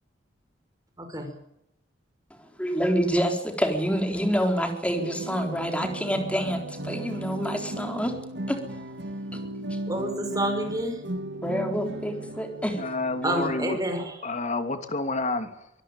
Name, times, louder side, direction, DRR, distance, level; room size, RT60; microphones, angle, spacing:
voice 1, 1.0-1.3 9.9-11.0 13.2-14.1, right 1 dB, 20° right, 5 dB, 5.7 m, -28 dB
voice 2, 2.6-8.1 8.5-8.6 9.7-9.8 11.4-12.8, equal, 5° left, 5 dB, 3.9 m, -27 dB
sound 1, 5.0-13.5, right 1 dB, 65° right, 2.0 m, -36 dB
voice 3, 12.7-13.8 14.2-15.5, left 3 dB, 40° left, 8 dB, 2.8 m, -29 dB
24.5 x 16.5 x 9.1 m, 0.79 s
head